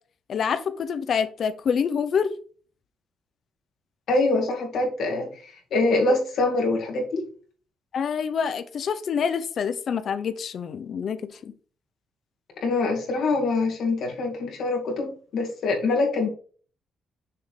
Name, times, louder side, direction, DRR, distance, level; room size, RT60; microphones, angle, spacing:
voice 1, 0.3-2.3 7.9-11.5, left 7 dB, 45° left, 0.6 m, -26 dB
voice 2, 4.1-7.2 12.6-16.3, left 2 dB, 65° left, 2.3 m, -24 dB
6.6 x 3.7 x 4.9 m
cardioid pair, 165°, 0 cm